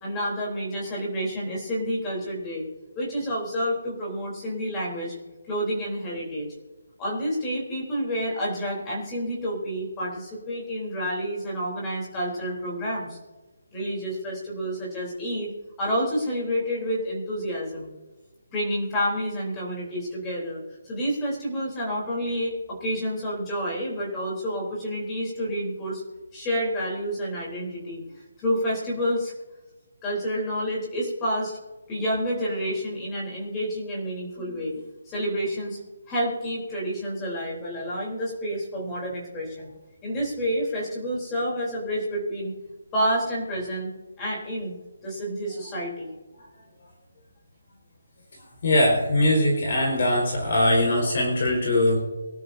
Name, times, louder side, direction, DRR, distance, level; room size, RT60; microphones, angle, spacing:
voice 1, 0.0-2.6 3.0-5.1 5.5-6.5 7.0-13.2 13.7-15.5 15.8-17.9 18.5-26.0 26.3-29.3 30.0-31.6 31.9-34.7 35.1-35.8 36.1-39.7 40.0-42.5 42.9-43.9 44.2-44.7 45.0-46.1, equal, 10° left, -4 dB, 3.5 m, -29 dB
voice 2, 48.6-52.0, left 1 dB, 40° left, -2 dB, 4.8 m, -21 dB
23.5 x 12.5 x 2.7 m, 1.2 s
hypercardioid pair, 175°, 0 cm